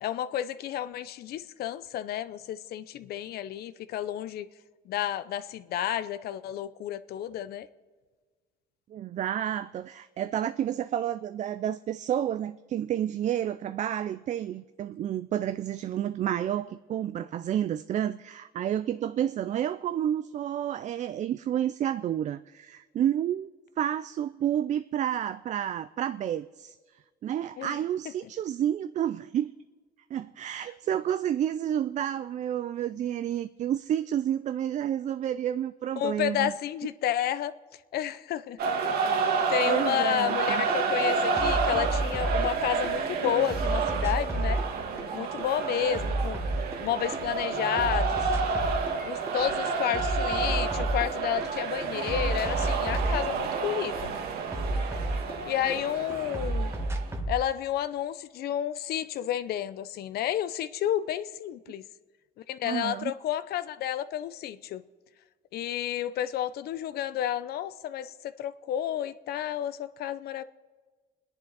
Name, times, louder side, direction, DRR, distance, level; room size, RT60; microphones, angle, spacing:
voice 1, 0.0-4.5 4.9-7.7 27.6-27.8 36.0-37.5 37.9-38.6 39.1-44.6 45.1-46.4 46.8-48.3 49.0-54.1 55.5-56.7 57.3-61.9 62.5-64.8 65.5-70.4, left 11 dB, 70° left, 14 dB, 0.7 m, -31 dB
voice 2, 8.9-23.5 23.8-26.8 27.2-29.5 30.1-36.5 39.7-40.6 62.6-63.1, right 10 dB, 45° right, 13 dB, 0.4 m, -30 dB
sound 1, 38.6-57.1, right 5 dB, 65° right, 1.6 m, -30 dB
sound 2, 40.3-40.4 40.7-42.9 43.2-47.2 47.5-49.0 49.3-51.5 51.8-55.8 56.1-57.4, right 1 dB, 15° right, 1.4 m, -31 dB
29.5 x 10.5 x 4.0 m, 1.4 s
cardioid pair, 110°, 17 cm